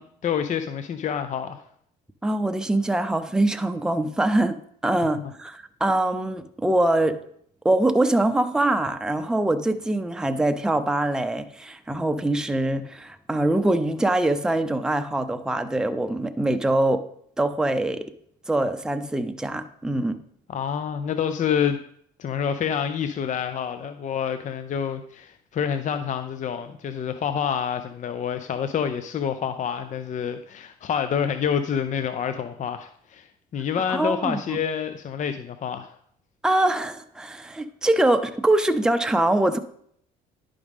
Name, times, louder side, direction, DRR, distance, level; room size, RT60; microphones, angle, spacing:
voice 1, 0.0-1.6 5.2-5.3 20.5-21.8 22.2-35.9, left 7 dB, 40° left, 9 dB, 0.6 m, -28 dB
voice 2, 2.2-4.6 4.8-7.2 7.6-17.1 17.4-18.1 18.5-20.2 33.9-34.6 36.4-39.6, right 1 dB, 5° right, 8 dB, 0.7 m, -23 dB
10.5 x 5.0 x 3.6 m, 0.66 s
supercardioid pair, 80°, 19 cm